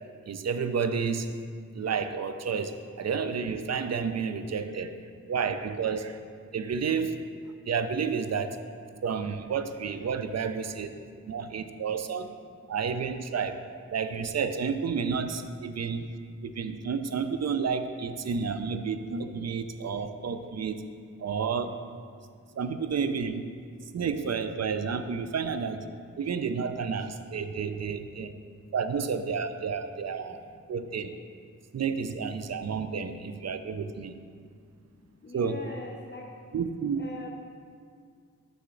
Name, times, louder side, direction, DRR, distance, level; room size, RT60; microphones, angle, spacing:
voice 1, 0.3-1.4 1.7-5.0 5.3-6.2 6.5-7.2 7.7-8.6 9.0-10.9 11.3-12.3 12.7-13.6 13.9-16.1 16.4-20.8 21.2-21.8 22.6-23.5 23.9-25.9 26.2-28.3 28.7-30.4 30.7-31.1 31.7-34.1 35.3-35.6 36.5-37.0, right 6 dB, 50° right, 9 dB, 0.5 m, -30 dB
voice 2, 35.2-36.4 37.0-37.3, left 2 dB, 35° left, -1 dB, 0.7 m, -42 dB
6.6 x 6.1 x 3.8 m, 2.1 s
cardioid pair, 45°, 34 cm